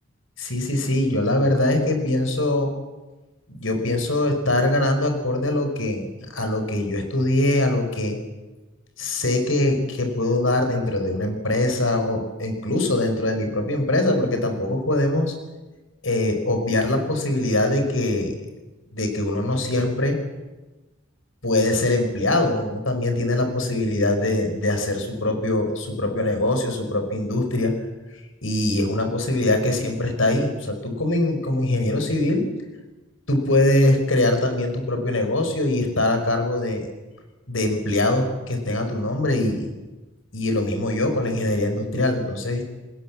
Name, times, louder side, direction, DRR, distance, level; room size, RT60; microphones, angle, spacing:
voice 1, 0.4-2.8 3.5-8.2 9.0-15.3 16.0-18.3 18.9-20.2 21.4-27.7 28.4-32.4 33.3-36.9 37.5-39.7 40.3-42.6, left 1 dB, 85° left, 6 dB, 5.4 m, -22 dB
28.5 x 20.5 x 7.6 m, 1.1 s
head